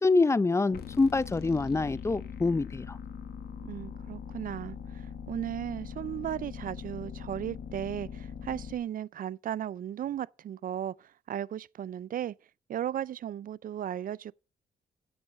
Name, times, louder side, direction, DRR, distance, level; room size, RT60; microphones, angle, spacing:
voice 1, 0.0-3.0, left 3 dB, 15° left, 0.5 m, -26 dB
sound 1, 0.7-8.7, left 7 dB, 85° left, 1.6 m, -41 dB
voice 2, 3.6-12.4 12.7-14.3, right 10 dB, 60° right, 0.4 m, -36 dB
8.8 x 8.0 x 6.3 m
cardioid pair, 80°, 16 cm